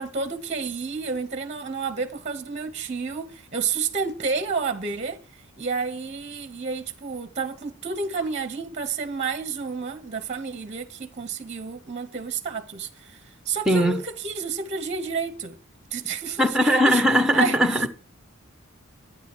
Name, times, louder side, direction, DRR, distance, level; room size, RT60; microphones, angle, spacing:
voice 1, 0.0-5.2 5.6-13.2 13.5-15.6 15.9-17.0 17.3-17.6, right 5 dB, 35° right, 0.9 m, -30 dB
voice 2, 13.7-14.0 16.4-17.9, equal, 5° right, 1.2 m, -19 dB
12.0 x 9.7 x 4.5 m
head